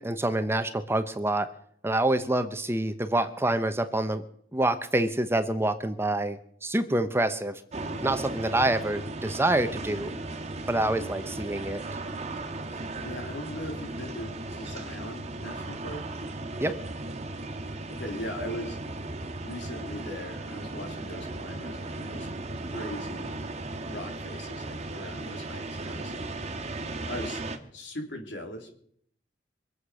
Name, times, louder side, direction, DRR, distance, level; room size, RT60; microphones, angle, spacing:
voice 1, 0.0-1.5 1.8-4.2 4.5-7.6 8.0-10.1 10.7-12.0 16.6-16.7, right 1 dB, 15° right, 10 dB, 0.9 m, -27 dB
sound 1, 7.7-27.6, right 2 dB, 35° right, 1.5 m, -36 dB
voice 2, 12.7-16.1 17.6-18.8 19.4-23.3 23.9-26.1 27.0-27.4 27.7-28.7, left 1 dB, 75° left, 4 dB, 3.3 m, -40 dB
24.5 x 8.2 x 6.3 m, 0.65 s
head